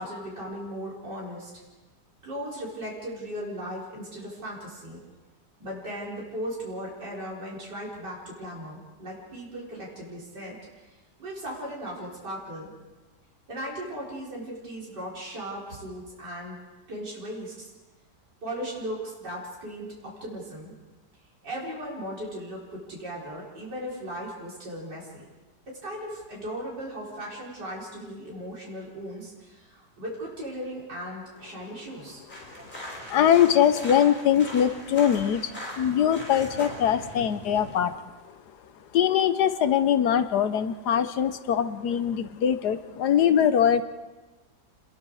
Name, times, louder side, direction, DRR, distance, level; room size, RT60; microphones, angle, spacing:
voice 1, 0.0-1.5 2.2-5.0 5.6-10.6 11.2-12.7 13.5-16.6 16.9-17.7 18.4-20.7 21.4-25.2 25.7-32.2, equal, 85° right, -5 dB, 5.1 m, -37 dB
sound 1, 32.3-37.8, equal, 25° left, 5.8 m, -40 dB
voice 2, 32.9-38.5 38.9-43.8, left 9 dB, 75° left, 12 dB, 1.4 m, -23 dB
29.0 x 21.5 x 4.8 m, 1.2 s
omnidirectional pair, 1.8 m